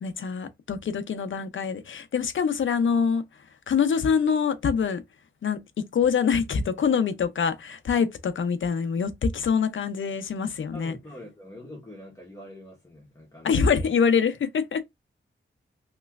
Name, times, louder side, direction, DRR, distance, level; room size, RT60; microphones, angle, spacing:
voice 1, 0.0-5.0 5.4-5.6 5.9-10.9 13.4-14.8, left 6 dB, 75° left, 0.6 m, -25 dB
voice 2, 10.7-13.9, left 1 dB, 15° left, 1.2 m, -45 dB
3.1 x 3.0 x 2.4 m
wide cardioid pair, 95°, 20 cm